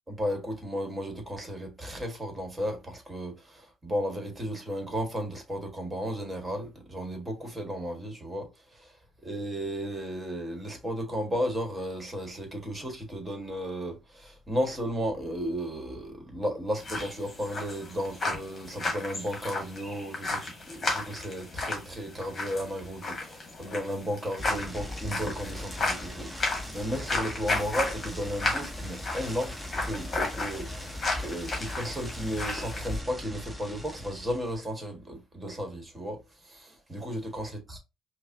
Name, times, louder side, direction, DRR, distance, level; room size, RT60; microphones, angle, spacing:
voice 1, 0.1-9.0 9.2-37.8, equal, 20° right, 1.4 m, -34 dB
sound 1, 16.8-33.0, left 2 dB, 35° left, 1.5 m, -34 dB
sound 2, 24.4-34.6, left 1 dB, 5° right, 0.8 m, -39 dB
5.2 x 2.1 x 2.7 m
cardioid pair, 105°, 0 cm